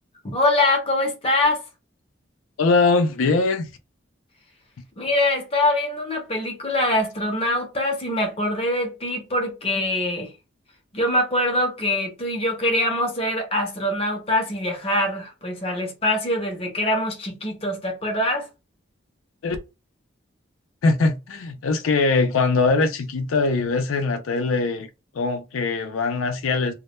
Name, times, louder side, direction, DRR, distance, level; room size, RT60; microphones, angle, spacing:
voice 1, 0.2-1.6 5.0-10.3 10.9-18.5, left 1 dB, 30° left, 0.6 m, -23 dB
voice 2, 2.6-3.7 19.4-19.6 20.8-24.9 25.1-26.7, left 3 dB, 85° left, 0.4 m, -21 dB
2.1 x 2.1 x 2.9 m
head